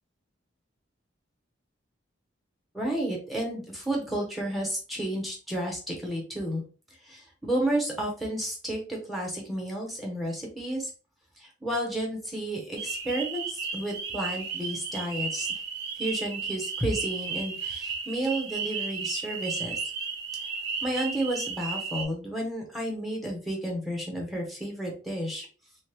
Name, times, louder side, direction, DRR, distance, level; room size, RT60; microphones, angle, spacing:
voice 1, 2.7-6.6 7.0-10.9 11.4-15.5 16.0-19.8 20.8-25.5, right 1 dB, ahead, -1 dB, 0.7 m, -31 dB
sound 1, 12.8-22.0, right 5 dB, 55° right, 0.5 m, -34 dB
2.8 x 2.1 x 3.4 m, 0.37 s
head